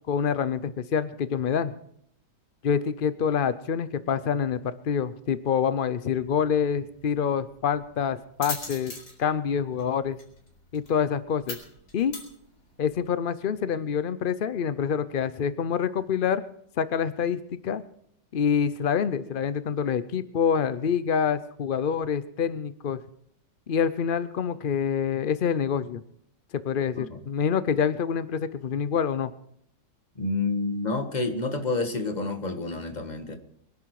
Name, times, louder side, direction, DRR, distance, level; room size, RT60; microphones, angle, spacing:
voice 1, 0.1-1.7 2.6-10.2 10.7-11.6 11.9-12.1 12.8-16.4 16.8-17.8 18.3-23.0 23.7-26.0 26.5-29.3, left 7 dB, 85° left, 14 dB, 0.4 m, -26 dB
sound 1, 6.1-13.0, left 2 dB, 70° left, 4.6 m, -42 dB
voice 2, 30.2-33.4, left 3 dB, 25° left, 7 dB, 1.5 m, -28 dB
23.5 x 11.0 x 4.7 m, 0.70 s
omnidirectional pair, 1.8 m